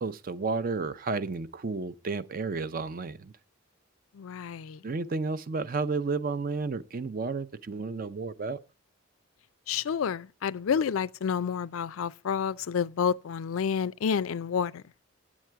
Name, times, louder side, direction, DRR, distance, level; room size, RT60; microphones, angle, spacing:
voice 1, 0.0-3.3 4.8-8.6, right 4 dB, 45° right, 0.5 m, -32 dB
voice 2, 4.1-4.8 9.7-14.8, left 7 dB, 90° left, 0.4 m, -29 dB
8.9 x 7.4 x 4.5 m
head